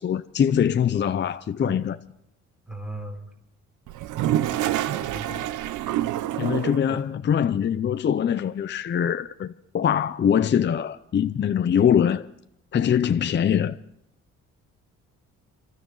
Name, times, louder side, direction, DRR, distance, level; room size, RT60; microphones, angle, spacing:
voice 1, 0.0-2.0 6.4-12.3 12.7-13.8, left 8 dB, 35° left, 0.6 m, -23 dB
voice 2, 2.7-3.3 4.2-4.4 4.9-5.5 6.9-7.0, right 1 dB, ahead, 3.5 m, -37 dB
Toilet flush, 3.9-6.9, right 12 dB, 80° right, 0.7 m, -27 dB
27.0 x 13.0 x 3.9 m
cardioid pair, 90°, 30 cm